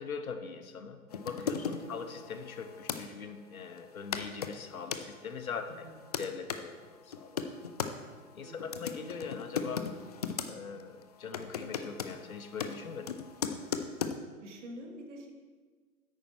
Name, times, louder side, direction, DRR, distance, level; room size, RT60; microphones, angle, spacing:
voice 1, 0.0-5.9 6.2-7.5 8.3-9.9 10.5-13.2, left 5 dB, 75° left, 8 dB, 1.1 m, -41 dB
sound 1, 1.1-3.0 3.8-3.9 4.1-5.0 5.7-6.6 7.1-7.9 8.6-10.5 10.8-11.0 11.3-14.2, left 6 dB, 30° left, 0.4 m, -37 dB
voice 2, 8.4-8.7 14.4-15.3, right 1 dB, 55° right, 2 dB, 1.9 m, -47 dB
10.0 x 8.5 x 4.3 m, 1.5 s
figure-of-eight pair, 120°, 43 cm